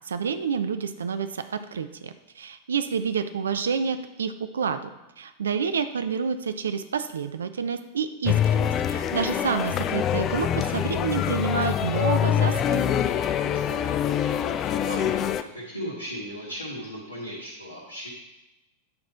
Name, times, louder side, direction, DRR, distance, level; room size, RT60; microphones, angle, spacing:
voice 1, 0.1-4.9 5.2-13.1, right 6 dB, 70° right, 10 dB, 0.5 m, -29 dB
sound 1, 8.3-15.4, left 9 dB, 30° left, 0.4 m, -25 dB
voice 2, 13.4-14.3 14.6-18.1, equal, 85° left, -6 dB, 1.7 m, -37 dB
9.5 x 4.2 x 4.5 m, 0.97 s
figure-of-eight pair, 90°, 0 cm